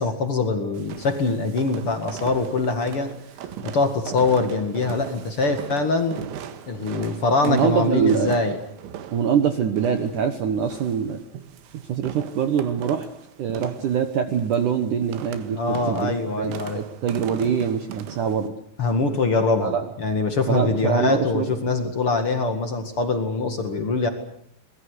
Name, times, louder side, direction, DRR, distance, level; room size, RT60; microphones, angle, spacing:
voice 1, 0.0-3.1 3.6-6.2 6.7-8.6 15.6-16.8 18.8-24.1, left 3 dB, 45° left, 6 dB, 1.9 m, -23 dB
sound 1, 0.8-18.5, right 9 dB, 85° right, 3.9 m, -39 dB
voice 2, 7.4-8.4 9.1-11.2 11.9-13.1 13.4-15.6 15.9-18.5 19.6-19.9 20.5-21.5, right 7 dB, 70° right, 8 dB, 2.0 m, -24 dB
24.0 x 21.0 x 8.3 m, 0.69 s
omnidirectional pair, 5.3 m